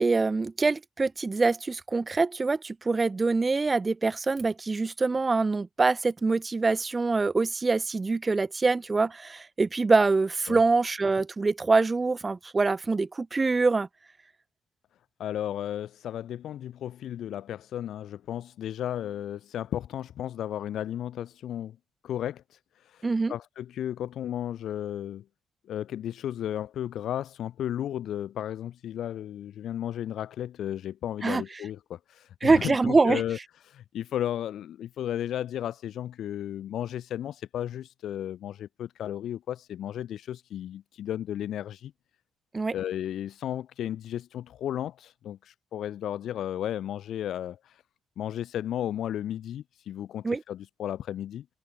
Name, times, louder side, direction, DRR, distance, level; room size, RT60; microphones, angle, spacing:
voice 1, 0.0-13.9 23.0-23.3 31.2-31.4 32.4-33.2 42.5-42.7 50.2-50.4, right 3 dB, 25° right, 0.8 m, -24 dB
voice 2, 15.2-21.8 22.0-22.6 22.8-25.2 25.7-33.4 33.6-41.9 42.7-47.8 48.2-51.5, left 11 dB, 70° left, 1.8 m, -34 dB
cardioid pair, 90°, 0 cm